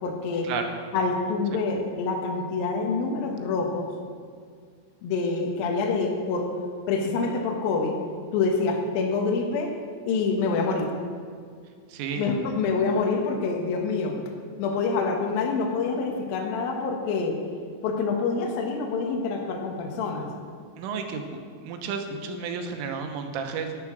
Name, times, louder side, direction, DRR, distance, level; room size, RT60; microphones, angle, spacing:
voice 1, 0.0-0.5 0.9-3.9 5.0-6.5 6.9-8.0 8.3-9.7 10.1-10.9 12.1-14.2 14.6-17.4 17.8-20.3, left 4 dB, 65° left, 2 dB, 2.4 m, -26 dB
voice 2, 11.9-12.3 20.8-21.2 21.6-23.7, right 5 dB, 80° right, 5 dB, 3.5 m, -32 dB
11.0 x 9.4 x 6.2 m, 2.1 s
omnidirectional pair, 5.7 m